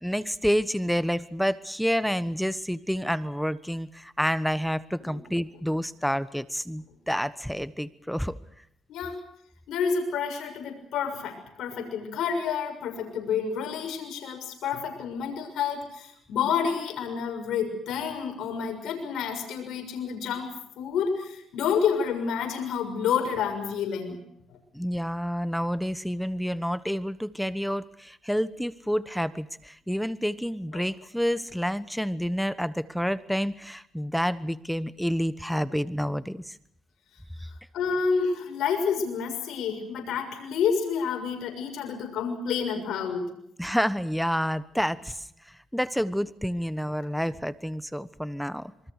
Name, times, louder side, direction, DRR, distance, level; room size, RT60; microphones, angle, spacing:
voice 1, 0.0-8.3 24.7-36.5 37.4-37.5 43.6-45.3 45.7-48.7, equal, ahead, 14 dB, 1.2 m, -29 dB
voice 2, 8.9-9.2 9.7-20.5 20.8-24.2 30.7-30.8 37.7-43.2, left 6 dB, 75° left, 4 dB, 6.6 m, -29 dB
27.0 x 23.5 x 6.6 m, 0.71 s
cardioid pair, 90°, 0 cm